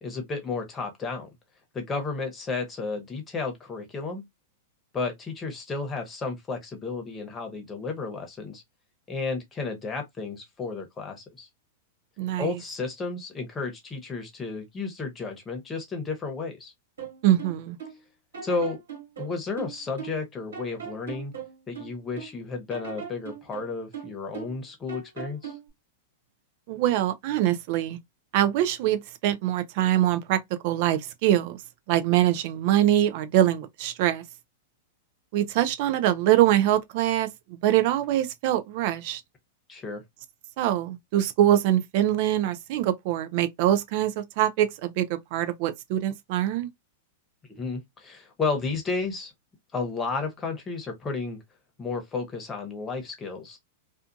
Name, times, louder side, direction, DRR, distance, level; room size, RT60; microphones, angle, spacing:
voice 1, 0.0-1.3 1.7-4.2 4.9-8.6 9.1-11.5 12.4-16.7 18.4-18.8 19.2-21.3 21.7-25.5 39.7-40.0 47.5-49.3 49.7-51.4 51.8-53.6, left 4 dB, 20° left, 1.0 m, -32 dB
voice 2, 12.2-12.6 17.2-17.8 26.7-28.0 28.3-31.6 31.9-34.2 35.3-39.2 40.6-46.7, right 12 dB, 55° right, 0.5 m, -24 dB
sound 1, 17.0-18.0 18.3-20.3 20.5-22.4 22.7-24.6 24.9-25.7, right 7 dB, 80° right, 1.3 m, -39 dB
2.4 x 2.4 x 2.5 m
hypercardioid pair, 110°, 0 cm